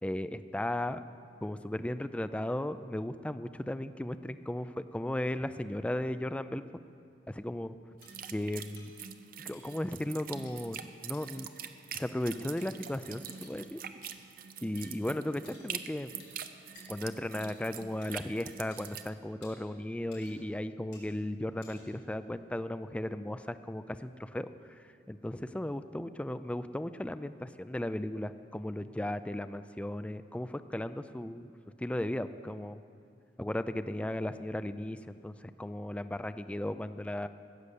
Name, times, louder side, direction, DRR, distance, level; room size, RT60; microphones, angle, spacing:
voice 1, 0.0-1.0 1.4-6.7 7.3-7.8 8.3-8.9 9.5-11.5 11.9-13.8 14.6-16.1 16.9-31.5 31.8-32.8 33.4-37.3, left 1 dB, 5° left, 11 dB, 0.3 m, -36 dB
sound 1, 8.0-8.1 8.8-8.9 9.5-9.8 10.5-10.6 11.1-11.3 11.9-12.0 12.6-12.7 13.3-13.5 14.0-14.1 14.8-14.9 15.5-15.7 16.2-16.3 16.8-16.9 17.4-17.5 18.0-18.1 18.7-18.8 19.4-19.5 20.1-20.5 20.9-21.1 21.6-22.0, left 4 dB, 70° left, 4.2 m, -56 dB
sound 2, 8.0-19.1, right 8 dB, 50° right, 0.6 m, -45 dB
15.0 x 8.1 x 6.8 m, 2.4 s
head